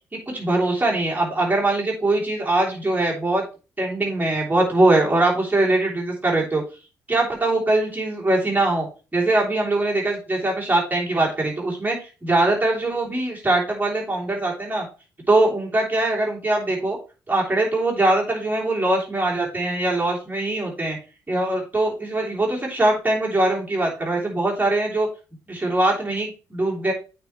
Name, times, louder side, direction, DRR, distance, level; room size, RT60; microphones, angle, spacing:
voice 1, 0.1-3.4 3.8-6.6 7.1-14.9 15.3-17.0 17.3-21.0 21.3-25.1 25.5-26.9, right 2 dB, 20° right, -2 dB, 3.2 m, -22 dB
8.8 x 4.5 x 3.2 m, 0.32 s
figure-of-eight pair, 40°, 9 cm